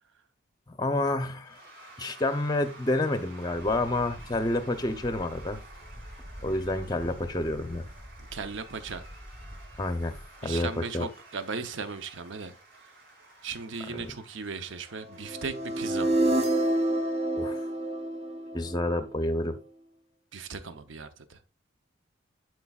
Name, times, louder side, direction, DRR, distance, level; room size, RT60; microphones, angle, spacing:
voice 1, 0.8-1.6 2.0-5.6 6.4-7.8 9.8-10.2 10.4-10.7 10.9-11.1 13.9-14.1 17.4-17.6 18.5-19.6, left 2 dB, 20° left, 0.6 m, -29 dB
Cheering / Applause / Crowd, 1.4-17.0, right 2 dB, 50° right, 3.6 m, -52 dB
Wind, 3.5-10.6, equal, 15° right, 1.2 m, -46 dB
voice 2, 8.3-9.1 10.4-12.5 13.4-16.2 20.3-21.4, right 5 dB, 75° right, 0.7 m, -37 dB
sound 1, 15.3-19.3, right 1 dB, 30° right, 0.6 m, -28 dB
11.0 x 4.6 x 2.3 m
head